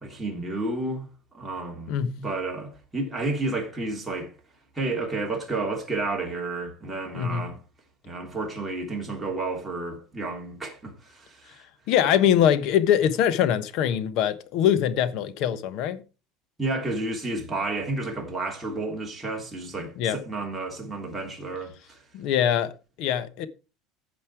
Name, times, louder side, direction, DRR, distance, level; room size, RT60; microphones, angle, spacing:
voice 1, 0.0-1.1 1.3-4.3 4.7-7.6 8.0-11.6 16.6-22.0, right 2 dB, 10° right, 3.3 m, -31 dB
voice 2, 7.1-7.5 11.9-16.0 19.8-20.2 22.1-22.7 23.0-23.5, left 9 dB, 55° left, 1.2 m, -23 dB
15.0 x 5.4 x 4.8 m
cardioid pair, 150°, 0 cm